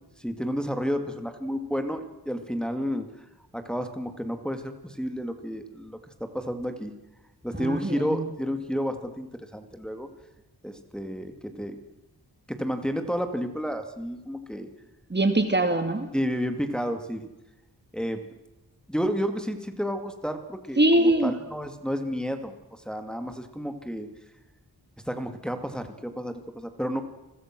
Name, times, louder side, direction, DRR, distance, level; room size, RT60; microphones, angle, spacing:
voice 1, 0.2-3.3 3.5-7.0 7.4-10.1 10.6-11.8 12.5-14.7 16.1-17.3 17.9-18.2 18.9-24.1 25.1-27.0, equal, ahead, 6 dB, 2.4 m, -31 dB
voice 2, 7.6-8.3 15.1-16.1 20.8-21.3, right 1 dB, 25° right, 8 dB, 2.4 m, -22 dB
29.5 x 21.5 x 6.2 m, 0.98 s
wide cardioid pair, 95°, 39 cm